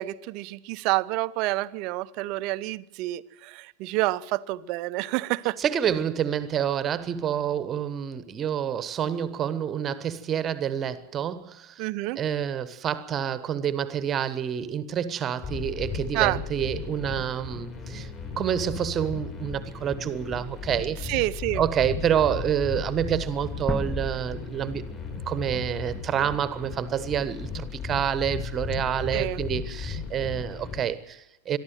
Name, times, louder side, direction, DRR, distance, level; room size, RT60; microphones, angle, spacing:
voice 1, 0.0-5.6 11.8-12.2 16.1-16.4 21.0-21.6 29.1-29.4, right 19 dB, 40° right, 0.8 m, -28 dB
voice 2, 5.6-11.8 12.2-18.1 18.4-21.0 21.6-25.0 25.3-31.6, right 9 dB, 25° right, 1.3 m, -28 dB
sound 1, 15.4-30.8, left 5 dB, 30° left, 6.3 m, -36 dB
sound 2, 23.7-26.6, left 1 dB, 5° left, 1.3 m, -36 dB
23.0 x 12.5 x 9.2 m
figure-of-eight pair, 90°, 0 cm